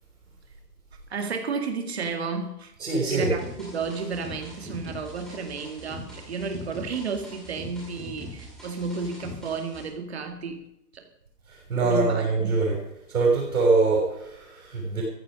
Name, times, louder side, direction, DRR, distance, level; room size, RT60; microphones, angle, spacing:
voice 1, 1.1-2.7 3.1-10.7 10.9-11.0 11.8-12.6, right 4 dB, 40° right, 5 dB, 2.1 m, -32 dB
voice 2, 2.8-3.3 11.5-12.8 13.1-15.0, right 3 dB, 55° right, -3 dB, 6.1 m, -23 dB
sound 1, 3.2-9.8, left 1 dB, ahead, 2.0 m, -42 dB
14.5 x 10.5 x 6.2 m, 0.82 s
hypercardioid pair, 175°, 50 cm